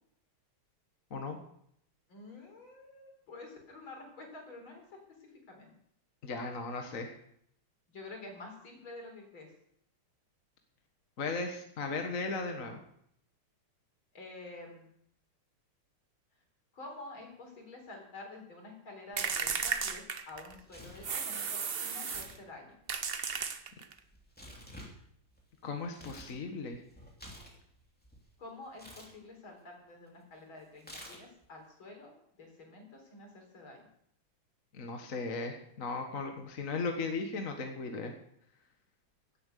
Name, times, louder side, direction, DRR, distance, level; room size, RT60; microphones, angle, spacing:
voice 1, 2.1-4.8 5.2-5.7 7.9-9.5 14.1-14.9 16.7-22.8 28.4-32.1 32.4-33.9, left 2 dB, 65° left, 2 dB, 4.7 m, -49 dB
voice 2, 6.2-7.1 11.2-12.8 25.6-26.8 34.7-38.1, left 3 dB, 40° left, 4 dB, 1.7 m, -36 dB
sound 1, 19.2-20.6 21.0-22.4 22.9-24.0, right 6 dB, 55° right, 0.6 m, -34 dB
Tearing, 20.3-21.2 21.9-22.4 22.7-26.4 26.7-28.2 28.7-29.1 30.8-31.5, equal, 5° left, 2.7 m, -51 dB
16.5 x 8.8 x 6.8 m, 0.71 s
omnidirectional pair, 2.4 m